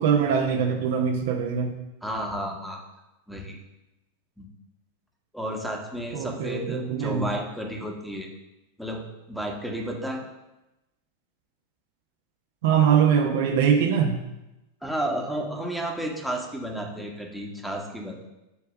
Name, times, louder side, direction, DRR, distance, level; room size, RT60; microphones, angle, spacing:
voice 1, 0.0-1.8 6.1-7.4 12.6-14.2, right 7 dB, 55° right, 3 dB, 0.8 m, -22 dB
voice 2, 2.0-2.8 3.3-3.6 4.4-4.5 5.3-8.3 8.8-9.0 9.3-10.2 14.8-18.3, right 1 dB, ahead, 1 dB, 1.2 m, -32 dB
7.1 x 3.3 x 6.2 m, 0.97 s
figure-of-eight pair, 90°, 0 cm